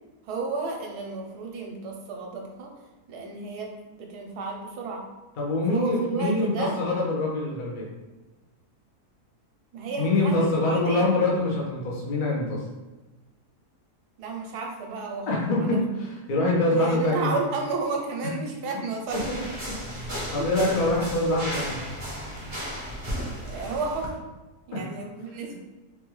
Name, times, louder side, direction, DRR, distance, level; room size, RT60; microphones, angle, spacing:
voice 1, 0.2-2.7 3.1-5.1 5.7-6.8 9.7-11.1 14.2-15.8 16.6-19.2 19.9-20.1 20.4-20.5 23.4-24.1 24.7-25.6, right 4 dB, 75° right, 1 dB, 1.1 m, -32 dB
voice 2, 5.4-7.9 10.0-12.6 15.3-17.4 18.2-18.3 19.7-21.8 24.7-24.8, left 2 dB, 50° left, -3 dB, 0.6 m, -25 dB
sound 1, 19.1-24.1, equal, 35° right, 0.5 m, -34 dB
3.4 x 2.3 x 3.0 m, 1.2 s
omnidirectional pair, 1.7 m